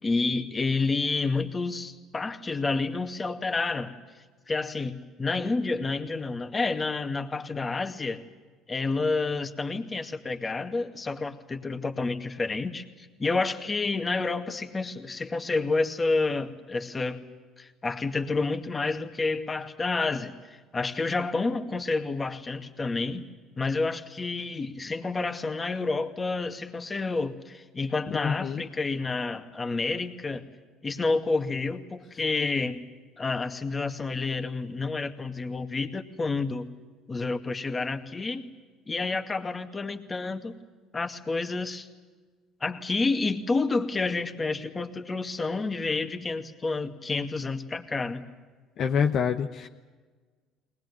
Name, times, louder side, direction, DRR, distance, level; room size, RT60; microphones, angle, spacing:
voice 1, 0.0-3.9 4.5-8.2 8.7-17.2 17.6-23.3 23.6-30.4 30.8-32.8 33.2-36.7 37.1-38.5 38.9-40.6 40.9-41.9 42.6-48.2, left 3 dB, 25° left, 7 dB, 2.2 m, -29 dB
voice 2, 28.2-28.6 48.8-49.7, left 7 dB, 55° left, 4 dB, 1.1 m, -26 dB
21.5 x 19.5 x 9.8 m, 1.4 s
hypercardioid pair, 70°, 0 cm